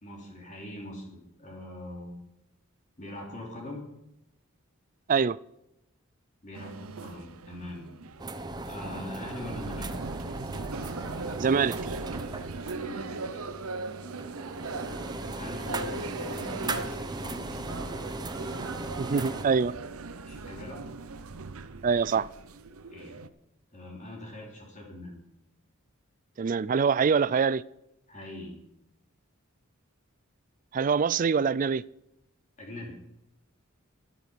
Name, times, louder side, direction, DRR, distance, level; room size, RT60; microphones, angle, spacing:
voice 1, 0.0-2.2 3.0-3.8 6.4-7.9 8.6-9.9 12.7-13.4 15.3-17.5 20.3-20.8 22.9-23.2 23.7-25.2 28.1-28.6 32.6-33.0, left 1 dB, 35° left, 3.3 m, -42 dB
sound 1, 6.5-23.3, right 3 dB, 90° right, 0.8 m, -39 dB
sound 2, 8.2-19.5, right 2 dB, 20° right, 0.8 m, -38 dB
voice 2, 11.4-11.8 19.0-19.7 21.8-22.3 26.4-27.6 30.7-31.8, right 5 dB, 40° right, 0.3 m, -24 dB
13.0 x 11.0 x 5.1 m
head